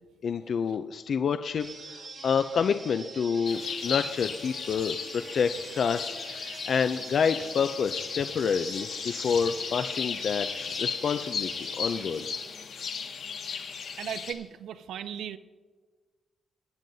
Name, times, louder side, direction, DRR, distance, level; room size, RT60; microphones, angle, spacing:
voice 1, 0.2-1.7 2.2-12.3, left 6 dB, 50° left, 9 dB, 0.4 m, -28 dB
sound 1, 1.6-12.3, right 3 dB, 50° right, 2.1 m, -45 dB
sound 2, 3.5-14.3, left 6 dB, 70° left, 1.3 m, -36 dB
voice 2, 14.0-15.4, right 9 dB, 90° right, 13 dB, 0.5 m, -37 dB
23.0 x 9.1 x 2.7 m, 1.5 s
wide cardioid pair, 150°, 0 cm